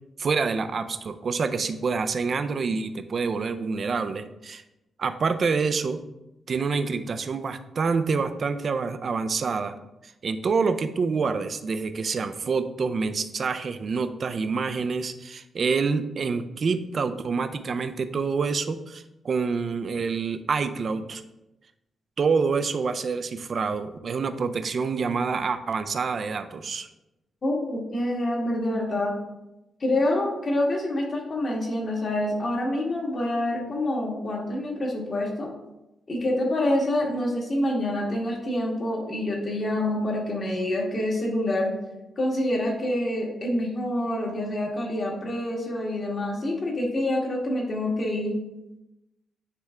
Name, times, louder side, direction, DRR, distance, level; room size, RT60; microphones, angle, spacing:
voice 1, 0.2-4.6 5.0-6.0 6.5-9.8 10.0-21.2 22.2-26.9, right 5 dB, 45° right, 10 dB, 0.4 m, -27 dB
voice 2, 27.4-29.1 29.8-35.5 36.1-41.7 42.2-48.3, left 1 dB, 35° left, -1 dB, 1.6 m, -26 dB
9.4 x 3.4 x 3.5 m, 0.94 s
wide cardioid pair, 145°, 0 cm